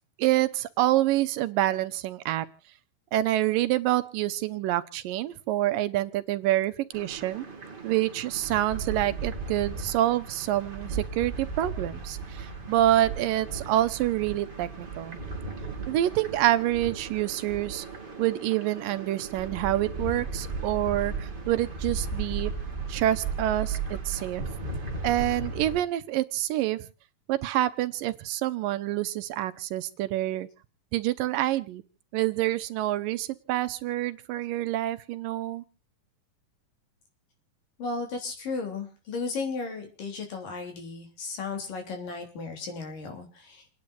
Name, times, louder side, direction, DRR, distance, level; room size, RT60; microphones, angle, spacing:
voice 1, 0.2-2.5 3.1-7.4 7.8-15.2 15.9-17.9 18.2-22.5 22.9-24.4 25.0-26.8 27.3-30.5 30.9-31.8 32.1-35.6, right 14 dB, 80° right, 10 dB, 2.5 m, -27 dB
sound 1, 6.9-25.8, right 4 dB, 20° right, 2.0 m, -36 dB
voice 2, 37.8-43.6, left 4 dB, 70° left, 4 dB, 5.1 m, -35 dB
29.0 x 10.5 x 2.7 m, 0.33 s
omnidirectional pair, 4.0 m